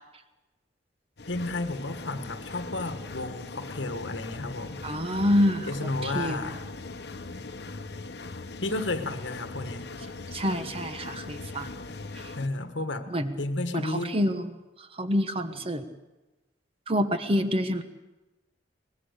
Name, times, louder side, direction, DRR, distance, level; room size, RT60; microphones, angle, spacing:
sound 1, 1.2-12.5, left 3 dB, 65° left, 1.1 m, -40 dB
voice 1, 1.3-4.8 5.6-6.6 8.6-9.9 12.3-13.1 13.4-14.1, left 2 dB, 85° left, 8 dB, 1.6 m, -32 dB
voice 2, 4.8-6.5 10.3-11.7 13.1-13.4 13.7-14.6 14.9-15.9 16.9-17.8, equal, 30° right, 8 dB, 1.3 m, -27 dB
24.0 x 20.0 x 6.7 m, 1.1 s
head